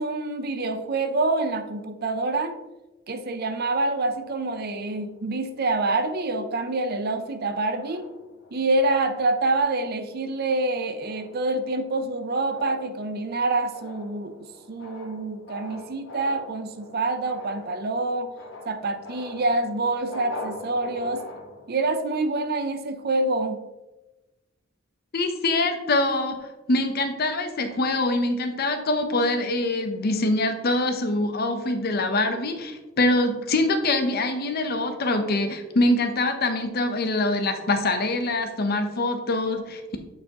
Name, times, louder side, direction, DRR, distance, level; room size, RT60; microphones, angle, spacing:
voice 1, 0.0-2.6 3.1-8.1 8.5-14.4 14.7-18.3 18.7-21.3 21.7-23.6, right 2 dB, 50° right, 9 dB, 0.6 m, -26 dB
sound 1, 3.9-5.8 6.4-6.6 7.0-7.4 7.7-9.0 9.5-9.8 10.2-21.8, left 2 dB, 70° left, 1.2 m, -43 dB
voice 2, 25.1-26.4 26.7-39.8, left 2 dB, 55° left, 7 dB, 0.7 m, -24 dB
8.3 x 4.8 x 2.9 m, 1.1 s
head